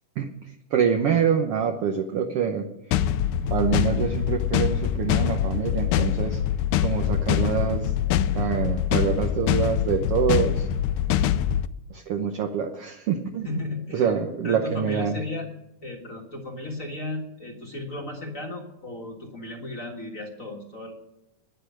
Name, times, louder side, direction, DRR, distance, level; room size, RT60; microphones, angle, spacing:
voice 1, 0.2-2.7 3.4-6.4 6.8-7.9 8.3-10.7 11.9-13.5 13.9-15.2, right 7 dB, 65° right, 4 dB, 1.5 m, -26 dB
sound 1, 2.9-11.7, left 10 dB, 80° left, 2.0 m, -24 dB
voice 2, 13.4-14.1 14.4-15.5 15.8-21.0, left 2 dB, 35° left, 1 dB, 1.3 m, -35 dB
10.0 x 10.0 x 9.1 m, 0.90 s
omnidirectional pair, 3.7 m